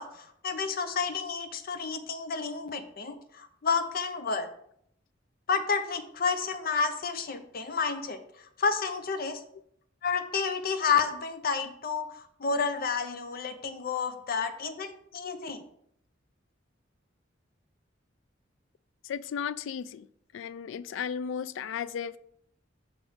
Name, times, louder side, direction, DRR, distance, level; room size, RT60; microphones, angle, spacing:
voice 1, 0.0-4.5 5.5-8.2 8.6-9.4 10.0-15.6, left 5 dB, 50° left, 0.7 m, -30 dB
voice 2, 19.0-20.1 20.3-22.2, left 7 dB, 80° left, 0.3 m, -35 dB
6.1 x 3.5 x 5.4 m
head